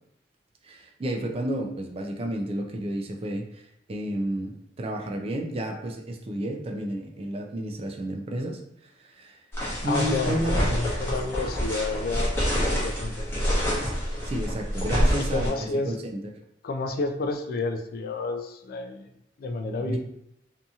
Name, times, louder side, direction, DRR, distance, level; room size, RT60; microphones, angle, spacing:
voice 1, 0.6-9.4 9.8-10.6 14.2-15.5 15.8-16.2 19.7-20.0, right 1 dB, 35° right, 2 dB, 0.3 m, -31 dB
sound 1, 9.5-15.5, equal, 15° left, 0.8 m, -27 dB
voice 2, 9.8-13.2 15.3-15.9 16.6-19.1 19.4-20.0, left 3 dB, 55° left, 6 dB, 0.3 m, -30 dB
2.7 x 2.7 x 2.3 m, 0.77 s
head